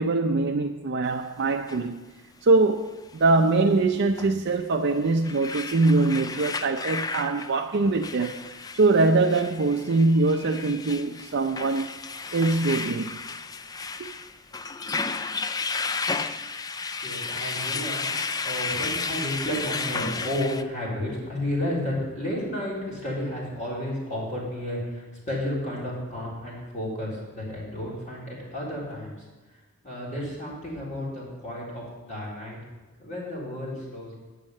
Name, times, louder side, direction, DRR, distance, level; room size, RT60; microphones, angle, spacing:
voice 1, 0.0-2.0 2.4-8.4 8.7-11.9 12.3-13.2 14.0-14.1, right 3 dB, 55° right, 0.5 m, -23 dB
sound 1, 1.7-1.8 4.2-4.3 4.9-20.6, left 4 dB, 15° left, 0.3 m, -33 dB
voice 2, 17.0-18.1 18.4-29.3 29.8-32.6 33.0-34.1, left 1 dB, 35° left, 4.0 m, -32 dB
9.3 x 6.4 x 7.2 m
head